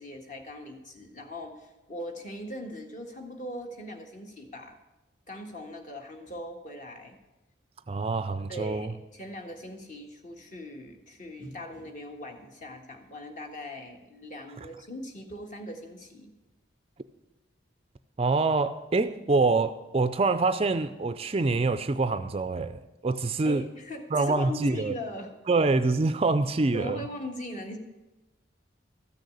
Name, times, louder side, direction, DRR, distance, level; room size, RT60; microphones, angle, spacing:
voice 1, 0.0-4.7 5.3-7.2 8.5-16.3 23.4-25.3 26.7-27.8, left 1 dB, 40° left, 1.5 m, -40 dB
voice 2, 7.9-8.9 18.2-23.6 24.1-24.9 25.5-27.0, right 3 dB, 30° right, 0.4 m, -25 dB
13.5 x 6.5 x 8.4 m
head